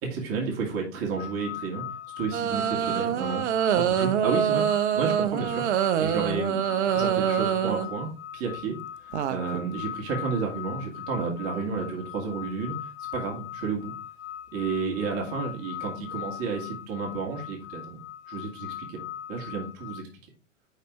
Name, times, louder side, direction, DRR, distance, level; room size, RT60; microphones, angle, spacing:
voice 1, 0.0-1.8 2.2-3.4 3.7-5.6 6.0-8.8 9.3-13.9 14.5-18.0 18.3-20.1, right 5 dB, 35° right, -1 dB, 1.8 m, -31 dB
sound 1, 1.2-20.0, left 11 dB, 50° left, 0.7 m, -40 dB
sound 2, 2.3-7.9 9.1-9.7, right 9 dB, 60° right, 0.7 m, -25 dB
5.2 x 4.2 x 4.6 m, 0.38 s
figure-of-eight pair, 100°, 39 cm